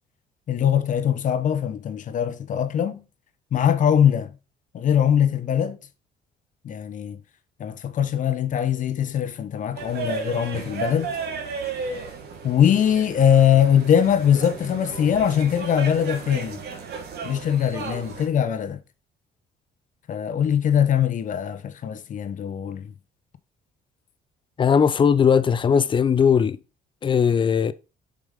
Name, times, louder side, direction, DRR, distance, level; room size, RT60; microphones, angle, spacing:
voice 1, 0.5-3.0 3.5-4.3 4.7-5.8 6.6-7.2 7.6-11.1 11.8-11.9 12.4-16.6 17.2-18.8 20.1-22.8, left 9 dB, 50° left, 0.9 m, -21 dB
sound 1, 9.7-18.3, right 5 dB, 75° right, 1.8 m, -34 dB
voice 2, 24.6-26.6 27.0-27.7, left 7 dB, 30° left, 0.5 m, -19 dB
7.3 x 4.9 x 3.6 m
cardioid pair, 110°, 17 cm